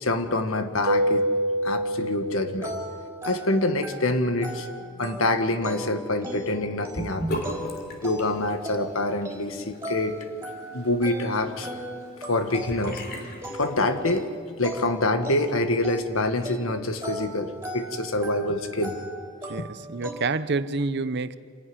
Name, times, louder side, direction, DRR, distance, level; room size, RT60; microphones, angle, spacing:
voice 1, 0.0-1.3 1.6-2.7 3.2-4.7 5.0-7.4 8.0-10.2 10.7-11.7 12.3-13.0 13.5-14.3 14.6-19.0, left 2 dB, 75° left, 8 dB, 1.6 m, -26 dB
Keyboard (musical), 0.9-3.4, right 1 dB, 85° right, 0.8 m, -27 dB
sound 1, 2.6-20.1, equal, 15° right, 4.2 m, -38 dB
Sink (filling or washing) / Bathtub (filling or washing), 6.9-14.3, equal, 45° left, 3.1 m, -38 dB
voice 2, 19.5-21.4, right 3 dB, 55° right, 14 dB, 0.7 m, -28 dB
26.5 x 11.5 x 9.6 m, 2.1 s
head